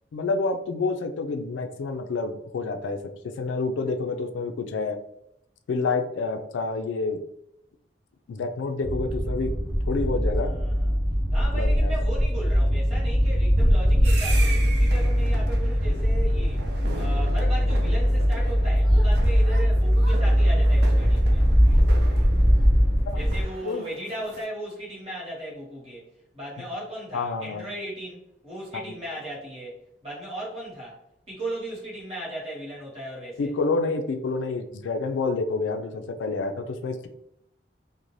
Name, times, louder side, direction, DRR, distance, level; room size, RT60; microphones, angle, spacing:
voice 1, 0.1-3.0 3.4-5.0 5.7-7.2 8.3-9.5 9.9-10.5 11.5-11.9 23.1-23.2 23.6-23.9 27.1-27.6 28.7-28.9 33.4-37.1, left 3 dB, 80° left, 7 dB, 0.3 m, -28 dB
sound 1, 8.8-23.4, equal, 5° left, 0.5 m, -21 dB
voice 2, 10.4-10.9 11.3-16.6 16.9-21.4 23.1-31.0 31.3-33.5, right 1 dB, 30° right, -6 dB, 1.2 m, -37 dB
sound 2, 14.0-24.5, right 3 dB, 60° right, 0.4 m, -39 dB
2.6 x 2.1 x 3.1 m, 0.77 s
head